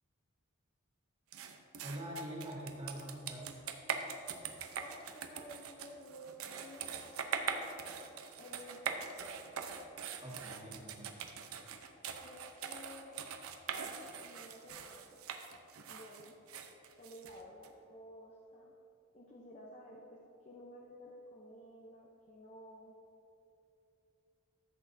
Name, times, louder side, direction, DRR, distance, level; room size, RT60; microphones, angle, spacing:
sound 1, 1.3-17.7, right 6 dB, 80° right, 0.7 m, -42 dB
voice 1, 1.8-3.5 10.2-11.1, equal, 25° right, -5 dB, 1.7 m, -44 dB
voice 2, 4.7-7.6 8.4-9.5 12.2-13.3 14.2-15.2 15.9-16.4 17.0-18.8 19.1-22.9, equal, 30° left, -2 dB, 0.6 m, -53 dB
13.5 x 8.0 x 2.7 m, 2.9 s
head